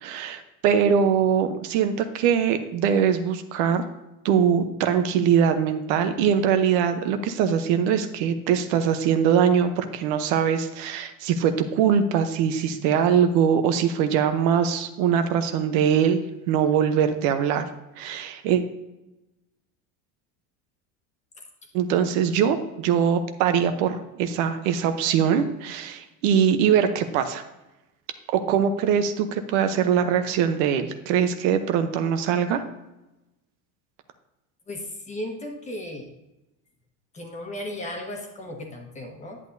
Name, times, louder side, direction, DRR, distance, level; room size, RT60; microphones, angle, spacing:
voice 1, 0.0-3.8 4.2-16.2 16.5-17.6 18.0-18.6 21.7-27.4 28.3-32.6, right 8 dB, 75° right, 8 dB, 1.0 m, -22 dB
voice 2, 34.7-36.1 37.1-39.4, left 1 dB, 20° left, 2 dB, 1.3 m, -35 dB
10.5 x 8.5 x 2.7 m, 0.97 s
cardioid pair, 145°, 38 cm